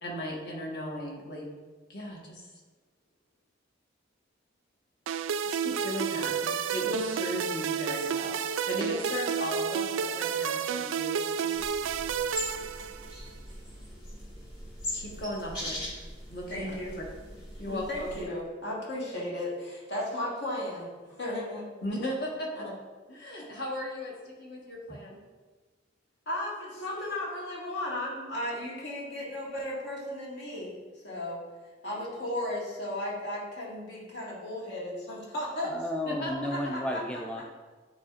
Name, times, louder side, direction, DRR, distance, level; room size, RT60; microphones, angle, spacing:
voice 1, 0.0-1.5 1.9-2.5 5.4-11.6 14.9-15.8 16.3-16.6 17.0-17.1 17.6-18.1 21.8-22.6 23.1-24.1 24.4-25.2 31.8-32.0 36.1-36.3 36.6-36.7, left 1 dB, 60° left, -2 dB, 1.4 m, -36 dB
sound 1, 5.1-13.3, right 7 dB, 85° right, 0.3 m, -31 dB
sound 2, 11.5-18.2, left 1 dB, 25° left, 1.6 m, -40 dB
voice 2, 16.5-16.9 17.7-20.9 21.2-21.6 22.5-22.7 23.4-23.5 26.3-30.8 31.0-31.4 31.8-35.7 36.5-37.0 37.4-37.5, left 1 dB, 75° left, -5 dB, 1.9 m, -35 dB
voice 3, 35.6-37.4, left 1 dB, 5° left, 1 dB, 0.3 m, -32 dB
9.7 x 4.1 x 2.5 m, 1.3 s
head